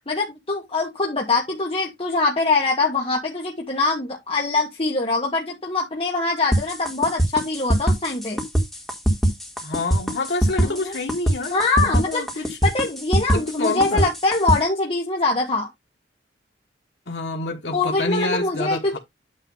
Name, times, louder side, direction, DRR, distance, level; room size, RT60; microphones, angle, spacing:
voice 1, 0.1-8.4 10.6-11.0 11.5-15.7 17.7-19.0, left 3 dB, 30° left, 1.5 m, -23 dB
sound 1, 6.5-14.6, right 1 dB, ahead, 1.9 m, -21 dB
voice 2, 9.6-12.6 13.3-14.1 17.1-19.0, left 2 dB, 75° left, 1.4 m, -28 dB
9.1 x 3.1 x 5.5 m
head